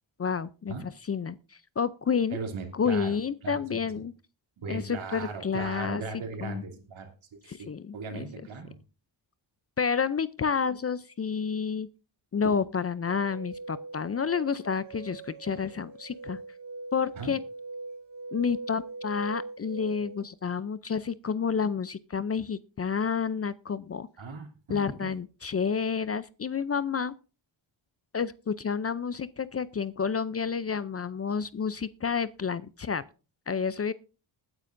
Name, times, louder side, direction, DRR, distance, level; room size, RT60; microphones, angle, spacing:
voice 1, 0.2-1.4 1.8-2.4 2.7-4.1 4.7-6.0 6.4-6.6 7.5-8.3 9.8-11.9 12.3-16.4 16.9-17.4 18.3-24.1 24.7-27.1 28.1-33.0 33.5-33.9, left 6 dB, 30° left, 0.5 m, -30 dB
voice 2, 2.3-3.2 3.4-3.8 4.6-7.1 7.4-8.8 12.4-12.6 17.2-17.3 24.2-25.1, right 4 dB, 75° right, 2.9 m, -38 dB
sound 1, 13.1-20.2, right 3 dB, 60° right, 3.3 m, -41 dB
20.5 x 9.6 x 2.6 m
cardioid pair, 95°, 48 cm